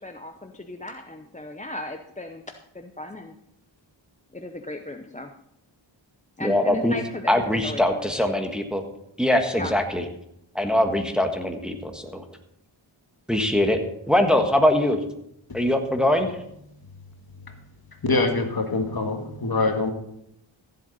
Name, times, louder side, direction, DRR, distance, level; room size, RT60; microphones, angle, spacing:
voice 1, 0.0-3.4 4.3-5.3 6.4-8.3 9.5-9.7, left 1 dB, 15° left, 5 dB, 0.7 m, -36 dB
voice 2, 6.4-6.9 7.3-8.8 9.2-10.0 10.5-12.2 13.3-13.8 14.1-15.0 15.5-16.3, left 1 dB, ahead, 4 dB, 1.4 m, -22 dB
voice 3, 18.1-19.9, left 3 dB, 50° left, 4 dB, 1.7 m, -24 dB
15.0 x 7.9 x 4.1 m, 0.78 s
wide cardioid pair, 60°, 48 cm